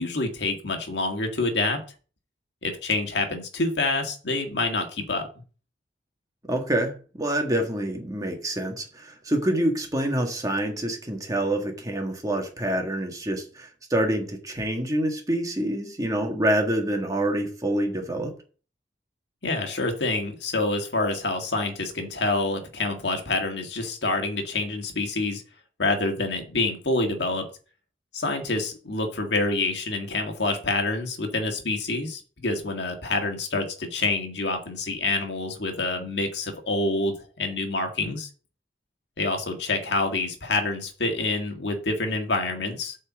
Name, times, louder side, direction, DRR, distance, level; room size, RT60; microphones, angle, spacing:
voice 1, 0.0-1.8 2.6-5.3 19.4-25.4 25.8-27.5 28.1-38.3 39.2-43.0, left 2 dB, 70° left, 4 dB, 1.8 m, -27 dB
voice 2, 6.5-18.3, right 1 dB, 20° right, 3 dB, 1.7 m, -26 dB
8.3 x 4.4 x 7.3 m, 0.38 s
head